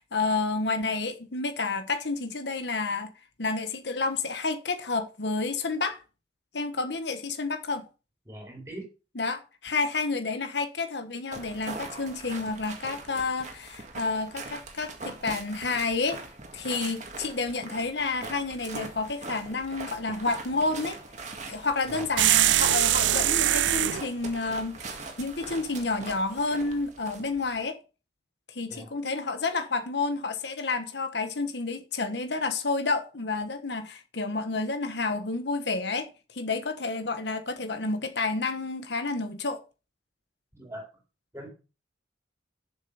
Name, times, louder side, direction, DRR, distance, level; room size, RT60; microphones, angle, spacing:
voice 1, 0.0-3.1 3.4-6.0 6.5-7.9 9.2-16.2 16.5-21.0 21.5-24.8 25.2-27.8 28.5-39.6, left 3 dB, 65° left, 1.1 m, -30 dB
voice 2, 8.3-8.8 21.8-22.1 28.7-28.9 29.3-29.4 40.5-40.9 41.3-41.5, right 1 dB, 15° right, 4.1 m, -41 dB
sound 1, 11.3-27.6, right 3 dB, 40° right, 2.0 m, -42 dB
sound 2, 22.2-24.0, right 13 dB, 75° right, 0.4 m, -22 dB
7.5 x 6.8 x 6.8 m
head